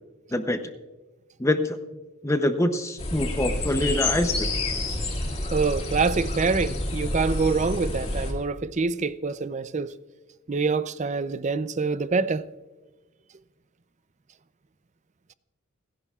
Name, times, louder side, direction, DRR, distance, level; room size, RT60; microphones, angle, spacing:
voice 1, 1.4-1.8 2.2-4.5, left 1 dB, 15° left, 0.6 m, -25 dB
sound 1, 3.0-8.3, left 2 dB, 30° left, 2.4 m, -28 dB
voice 2, 5.5-9.9 10.5-12.4, right 4 dB, 35° right, 0.5 m, -25 dB
30.0 x 11.0 x 2.4 m
head